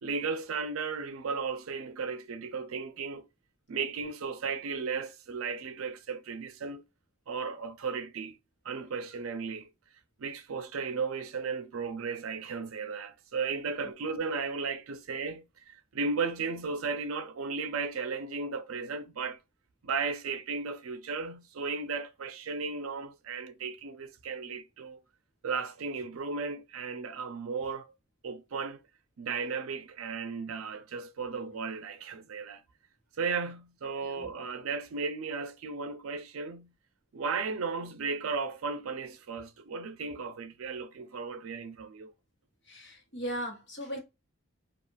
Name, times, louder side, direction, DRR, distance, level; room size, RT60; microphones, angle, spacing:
voice 1, 0.0-3.3 3.7-6.8 7.3-8.4 8.6-9.7 10.2-19.4 19.8-25.0 25.4-27.9 28.2-28.8 29.2-32.6 33.2-36.7 37.1-42.1, right 5 dB, 85° right, 0.5 m, -35 dB
voice 2, 34.0-34.3 42.7-44.0, equal, 55° left, 1.0 m, -38 dB
2.3 x 2.3 x 3.1 m
head